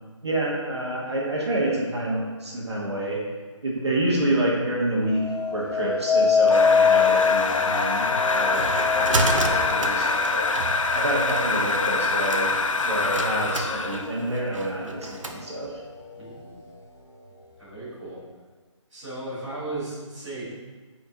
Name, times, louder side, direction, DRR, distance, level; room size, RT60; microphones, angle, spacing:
voice 1, 0.2-3.2 3.6-12.5 12.8-15.8, right 1 dB, 55° right, -4 dB, 1.5 m, -28 dB
sound 1, 5.1-14.3 14.8-15.3, left 5 dB, 40° left, 1.5 m, -25 dB
sound 2, 6.5-14.1, left 3 dB, 85° left, 0.6 m, -25 dB
sound 3, 8.0-15.4, right 2 dB, 80° right, 0.8 m, -32 dB
voice 2, 16.2-16.5 17.6-18.2 18.9-20.5, right 2 dB, 5° right, -21 dB, 1.6 m, -35 dB
8.5 x 4.5 x 2.9 m, 1.4 s
hypercardioid pair, 180°, 16 cm